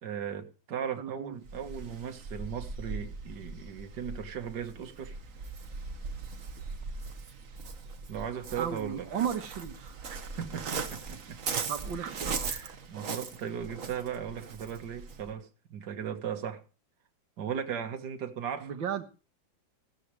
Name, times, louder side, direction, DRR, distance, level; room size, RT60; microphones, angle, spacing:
voice 1, 0.0-5.2 8.1-9.1 10.1-11.6 12.0-16.6 17.4-18.7, right 8 dB, 60° right, 2.1 m, -37 dB
voice 2, 1.0-1.4 8.6-10.0 11.7-12.5 18.6-19.0, right 8 dB, 80° right, 2.0 m, -34 dB
Waves surf, 1.4-15.3, right 4 dB, 45° right, 1.6 m, -39 dB
16.0 x 13.5 x 3.2 m
omnidirectional pair, 2.1 m